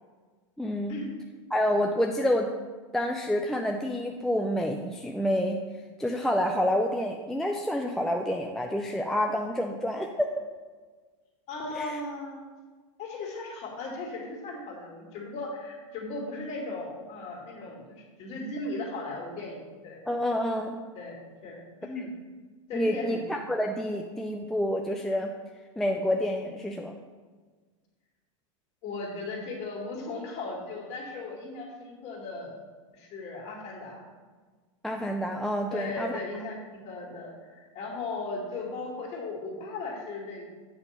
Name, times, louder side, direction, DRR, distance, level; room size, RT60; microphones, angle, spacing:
voice 1, 0.6-1.0 1.5-2.5 2.9-5.6 6.0-10.4 11.8-12.0 20.1-20.8 22.7-25.3 25.8-26.9 34.8-36.2, equal, ahead, 2 dB, 0.4 m, -28 dB
voice 2, 11.5-12.3 13.0-20.0 20.9-21.1 21.4-22.1 22.7-23.2 28.8-32.5 33.0-34.0 35.7-36.6 36.8-40.4, left 3 dB, 40° left, -2 dB, 2.4 m, -37 dB
8.3 x 3.6 x 6.6 m, 1.4 s
hypercardioid pair, 125°, 17 cm